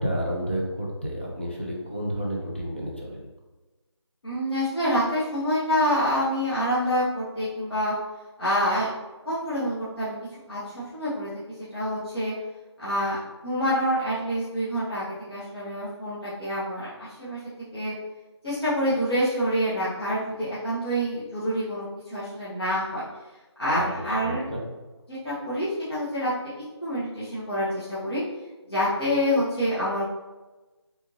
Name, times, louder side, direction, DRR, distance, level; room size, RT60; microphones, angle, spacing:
voice 1, 0.0-3.3 23.7-24.6, equal, 25° left, -3 dB, 0.4 m, -31 dB
voice 2, 4.2-7.9 8.4-8.9 9.2-10.2 10.5-11.3 11.7-12.3 12.8-13.2 13.4-17.4 17.7-17.9 18.4-23.0 23.6-24.5 25.1-26.5 26.8-28.2 28.7-30.1, equal, 60° left, -11 dB, 1.3 m, -27 dB
3.4 x 2.7 x 3.0 m, 1.2 s
figure-of-eight pair, 175°, 15 cm